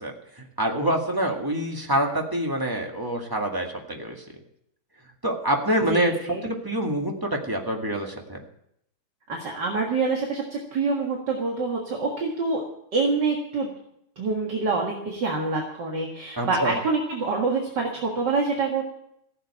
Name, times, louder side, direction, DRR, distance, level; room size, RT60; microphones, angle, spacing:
voice 1, 0.0-4.2 5.2-6.1 6.4-8.4 16.3-16.8, right 1 dB, 10° right, 1 dB, 1.8 m, -26 dB
voice 2, 5.9-6.4 9.3-12.6 12.9-13.7 14.2-19.0, right 4 dB, 55° right, -1 dB, 2.4 m, -26 dB
15.5 x 7.9 x 8.6 m, 0.75 s
omnidirectional pair, 2.3 m